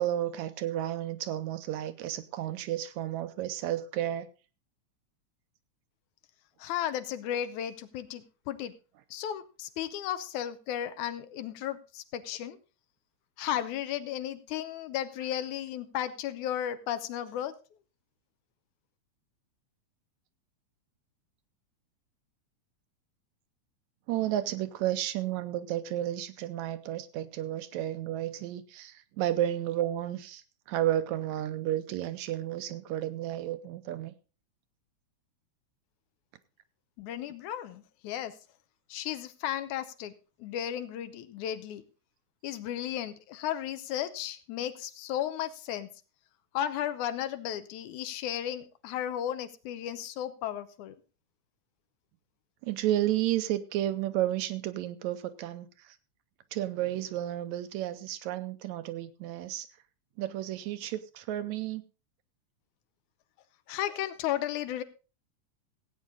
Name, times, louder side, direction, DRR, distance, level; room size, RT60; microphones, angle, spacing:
voice 1, 0.0-4.3 24.1-30.4 30.7-34.1 52.6-56.0 56.5-59.7 60.2-61.8, right 13 dB, 80° right, 11 dB, 2.0 m, -32 dB
voice 2, 6.6-8.7 9.1-12.6 13.4-17.5 37.0-38.3 38.9-40.1 40.4-41.8 42.4-45.9 46.5-50.9 63.7-64.8, left 11 dB, 80° left, 11 dB, 2.3 m, -34 dB
17.0 x 8.5 x 3.8 m, 0.33 s
omnidirectional pair, 3.4 m